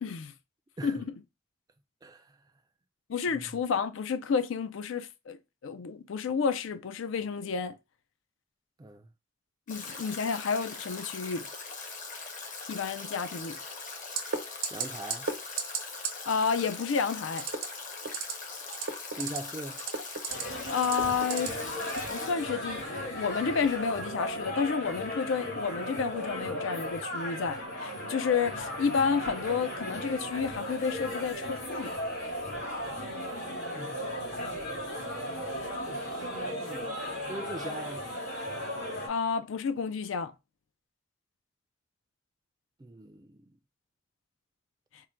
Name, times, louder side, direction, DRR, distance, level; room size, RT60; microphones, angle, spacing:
voice 1, 0.0-0.3 0.8-1.2 3.1-5.4 5.6-7.8 9.7-11.5 12.7-13.6 16.3-17.4 20.7-21.6 21.9-31.9 39.1-40.3, left 5 dB, 80° left, 0.4 m, -30 dB
voice 2, 2.0-2.3 3.4-3.5 8.8-9.1 14.7-15.3 19.2-19.8 33.7-34.8 35.9-36.9 37.3-38.0 42.8-43.4, right 1 dB, 20° right, 0.3 m, -42 dB
Stream / Drip / Trickle dribble, 9.7-22.3, left 4 dB, 40° left, 0.7 m, -41 dB
sound 1, 14.2-14.4 14.6-14.8 15.1-15.3 15.6-15.8 16.0-16.1 17.3-17.6 18.0-18.3 18.7-19.4 19.7-20.4 20.8-21.5 21.9-22.1, right 6 dB, 90° right, 0.8 m, -31 dB
sound 2, 20.3-39.1, equal, 65° left, 2.3 m, -36 dB
3.7 x 2.2 x 4.3 m
head